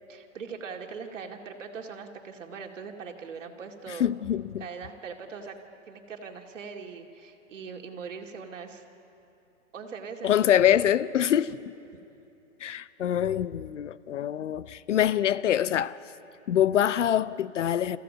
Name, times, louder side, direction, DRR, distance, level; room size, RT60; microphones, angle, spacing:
voice 1, 0.1-4.1 4.6-5.6 5.9-8.8 9.7-10.3, right 5 dB, 70° right, 2.4 m, -41 dB
voice 2, 4.0-4.7 10.2-11.6 12.6-16.0 16.5-18.0, left 10 dB, 65° left, 0.7 m, -25 dB
27.0 x 15.5 x 7.6 m
hypercardioid pair, 175°, 39 cm